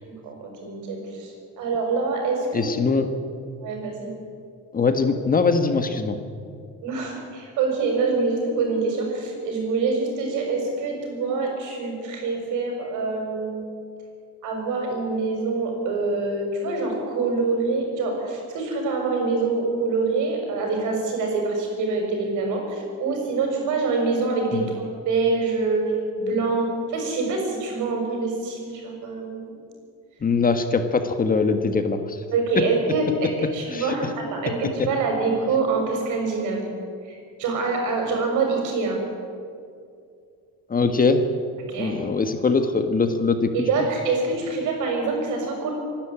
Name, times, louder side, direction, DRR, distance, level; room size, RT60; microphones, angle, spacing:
voice 1, 0.0-2.6 3.6-4.1 6.8-13.6 14.4-25.9 26.2-29.5 32.3-36.7 37.0-39.0 41.7-41.9 43.5-45.7, right 3 dB, 70° right, 1 dB, 6.8 m, -25 dB
voice 2, 2.5-3.1 4.7-6.2 24.5-24.7 30.2-32.2 33.7-33.9 34.8-34.9 40.7-41.2 41.8-43.7, left 4 dB, 25° left, 7 dB, 1.5 m, -22 dB
25.5 x 12.0 x 8.8 m, 2.4 s
cardioid pair, 115°, 32 cm